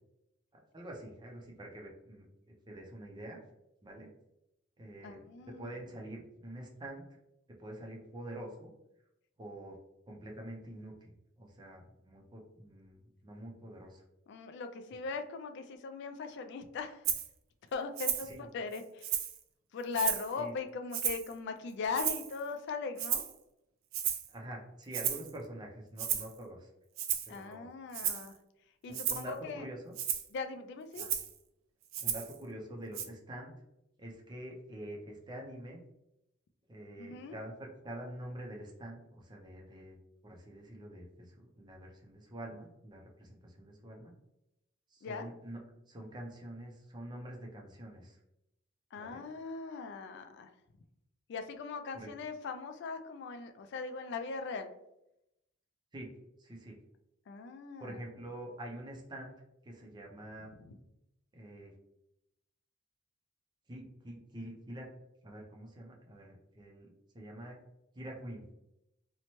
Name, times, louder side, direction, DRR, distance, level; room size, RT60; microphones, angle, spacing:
voice 1, 0.5-2.3 2.7-3.4 3.8-4.1 4.8-5.2 5.6-7.1 7.6-8.7 9.4-9.8 10.1-14.0 18.2-18.5 20.4-20.5 24.3-26.7 27.2-27.7 28.0-28.1 28.9-29.9 31.0-31.1 32.0-33.5 34.0-35.8 36.7-40.0 40.2-44.1 44.9-45.6 45.9-48.2 48.9-49.2 51.9-52.1 55.9-56.8 57.8-59.3 59.6-60.5 61.3-61.7 63.7-64.9 65.2-67.6 67.9-68.4, right 1 dB, 20° right, 0 dB, 0.5 m, -46 dB
voice 2, 5.0-5.7 14.3-17.0 17.7-19.2 19.7-23.2 27.3-28.4 28.8-29.6 30.3-31.0 37.0-37.4 45.0-45.3 48.9-50.5 51.3-54.7 57.3-58.0 60.6-60.8, left 4 dB, 55° left, 7 dB, 0.3 m, -39 dB
Rattle (instrument), 17.0-17.3 18.0-18.3 18.7-19.4 19.9-20.3 20.9-21.3 21.9-22.4 23.0-23.3 23.9-24.3 24.9-25.3 26.0-26.3 27.0-27.4 27.9-28.3 28.9-29.3 29.9-30.3 30.9-31.3 31.9-32.3 32.9-33.0, right 9 dB, 80° right, 0.4 m, -34 dB
2.8 x 2.1 x 2.9 m, 0.85 s
head